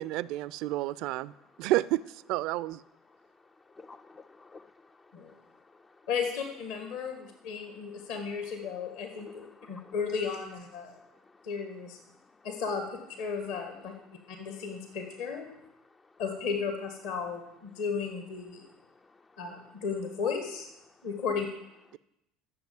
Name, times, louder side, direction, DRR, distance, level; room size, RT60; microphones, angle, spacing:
voice 1, 0.0-1.3 1.6-2.0 2.3-2.8, right 16 dB, 55° right, 20 dB, 0.4 m, -29 dB
voice 2, 3.7-4.9 5.3-5.4 9.3-9.9, left 3 dB, 20° left, 10 dB, 0.4 m, -52 dB
voice 3, 6.1-11.0 11.4-12.0 12.4-13.9 14.3-15.5 16.2-18.7 19.4-20.7 21.0-21.5, left 5 dB, 60° left, 5 dB, 1.6 m, -34 dB
12.0 x 7.0 x 7.3 m, 0.89 s
figure-of-eight pair, 65°, 0 cm